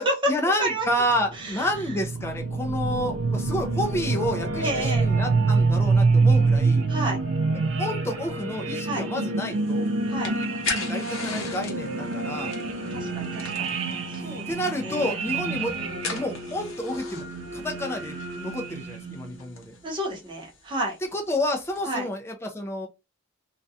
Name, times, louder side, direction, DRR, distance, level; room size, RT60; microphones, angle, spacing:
voice 1, 0.0-6.8 7.5-9.9 10.7-12.5 14.5-15.8 16.0-17.2 17.5-19.8 21.1-22.9, left 1 dB, 10° left, 0.4 m, -30 dB
sound 1, 1.0-19.4, right 3 dB, 70° right, 0.4 m, -26 dB
voice 2, 1.3-1.7 4.6-5.1 6.9-7.2 8.8-9.1 10.1-10.3 12.9-13.8 14.1-15.1 15.4-16.0 19.8-21.0 21.8-22.1, right 1 dB, 25° right, 0.7 m, -31 dB
sound 2, 9.4-21.9, left 4 dB, 90° left, 0.8 m, -40 dB
2.4 x 2.2 x 2.6 m
head